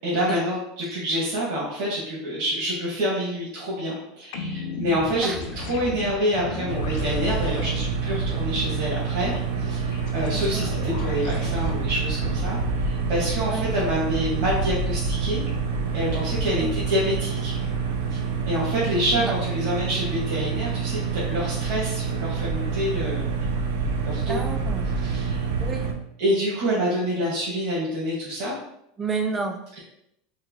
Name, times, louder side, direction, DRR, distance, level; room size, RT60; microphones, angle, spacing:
voice 1, 0.0-9.3 9.6-15.4 15.9-17.5 18.1-23.3 24.0-24.4 25.0-25.5 26.2-28.5, equal, 65° right, -7 dB, 1.1 m, -27 dB
sound 1, 4.3-11.8, left 3 dB, 70° left, 0.5 m, -35 dB
sound 2, 6.7-25.9, right 5 dB, 80° right, 0.5 m, -27 dB
voice 2, 10.3-10.6 13.5-13.7 16.6-16.7 19.2-19.3 24.3-24.9 25.6-25.9 29.0-29.6, right 4 dB, 15° right, 5 dB, 0.4 m, -30 dB
3.4 x 3.1 x 2.3 m, 0.78 s
supercardioid pair, 155°, 0 cm